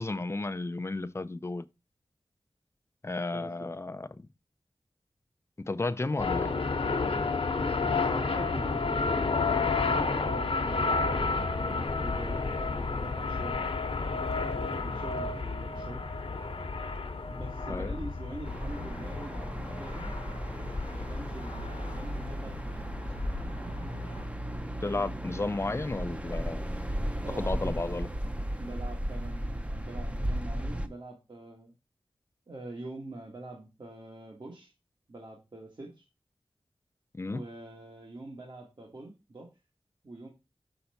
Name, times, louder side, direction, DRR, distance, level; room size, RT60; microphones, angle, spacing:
voice 1, 0.0-1.7 3.0-4.3 5.6-6.5 17.7-17.9 24.8-26.7 27.4-28.1 37.1-37.4, left 2 dB, 25° left, 0.4 m, -33 dB
voice 2, 3.3-3.7 7.8-9.5 9.8-10.9 11.7-13.6 14.6-16.0 17.3-20.1 20.8-23.4 27.2-28.0 28.6-31.7 32.5-34.7 35.1-36.0 37.2-39.5 40.0-40.3, right 2 dB, 50° right, 1.5 m, -44 dB
sound 1, 6.2-24.2, left 4 dB, 65° left, 1.1 m, -31 dB
sound 2, 18.5-30.9, right 1 dB, 15° right, 0.7 m, -35 dB
6.7 x 5.7 x 4.2 m
wide cardioid pair, 85°, 10 cm